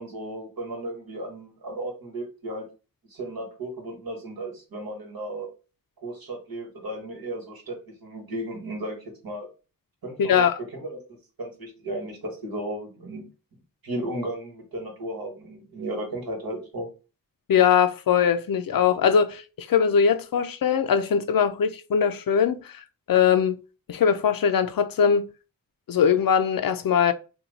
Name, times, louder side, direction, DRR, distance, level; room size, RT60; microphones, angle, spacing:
voice 1, 0.0-2.6 3.1-5.5 6.0-9.5 10.0-10.4 10.8-13.3 13.8-16.9, right 1 dB, 80° right, 1.3 m, -35 dB
voice 2, 10.2-10.6 17.5-23.6 23.9-25.3 25.9-27.1, left 7 dB, 75° left, 0.5 m, -21 dB
2.8 x 2.2 x 3.9 m
wide cardioid pair, 60°, 35 cm